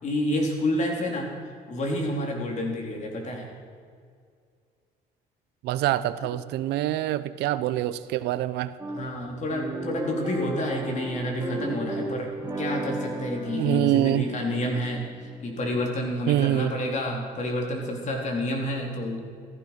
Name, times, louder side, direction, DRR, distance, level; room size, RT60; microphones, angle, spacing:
voice 1, 0.0-1.3 1.7-3.5 8.9-12.3 12.6-19.2, left 1 dB, 45° left, 0 dB, 4.0 m, -29 dB
voice 2, 5.6-8.7 13.5-14.3 16.3-16.7, right 14 dB, 85° right, 15 dB, 0.8 m, -25 dB
sound 1, 8.8-17.3, right 2 dB, 20° right, 3.6 m, -35 dB
15.0 x 15.0 x 6.0 m, 2.2 s
cardioid pair, 110°, 17 cm